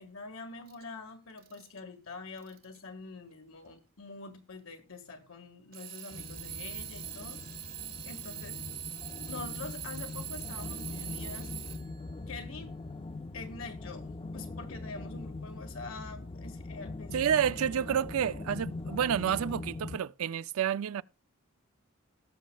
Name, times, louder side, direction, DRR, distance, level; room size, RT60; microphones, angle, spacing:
voice 1, 0.0-7.4 8.0-8.6 9.3-11.5 12.3-12.7 13.3-17.8, left 3 dB, 75° left, 1.7 m, -45 dB
Alarm / Clock, 0.7-0.8 1.4-1.8 2.4-2.8 3.7-3.8 5.7-12.1, right 12 dB, 45° right, 0.9 m, -42 dB
sound 1, 6.1-20.0, left 2 dB, 25° left, 0.4 m, -42 dB
voice 2, 17.1-21.0, right 9 dB, 90° right, 0.4 m, -29 dB
19.0 x 6.4 x 2.3 m
head